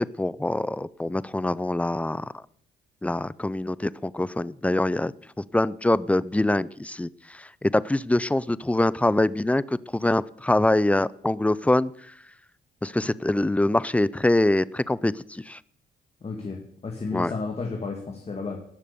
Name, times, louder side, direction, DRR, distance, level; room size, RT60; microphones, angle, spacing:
voice 1, 0.0-2.3 3.0-5.1 5.5-12.1 12.8-15.6 17.1-17.3, left 1 dB, 5° left, 19 dB, 0.4 m, -24 dB
voice 2, 16.2-18.6, left 4 dB, 30° left, 1 dB, 2.3 m, -32 dB
18.5 x 6.6 x 7.0 m, 0.66 s
cardioid pair, 90°, 20 cm